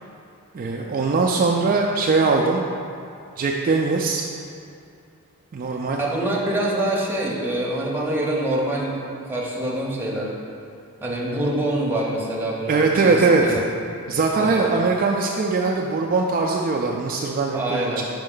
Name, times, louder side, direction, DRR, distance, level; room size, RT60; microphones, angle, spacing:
voice 1, 0.5-2.6 3.4-4.2 5.5-6.4 12.7-13.6 14.1-18.0, right 4 dB, 40° right, 0 dB, 0.3 m, -21 dB
voice 2, 6.0-10.3 11.0-13.6 14.4-14.7 17.5-18.0, right 1 dB, 10° right, -4 dB, 0.8 m, -25 dB
5.2 x 5.1 x 3.8 m, 2.4 s
head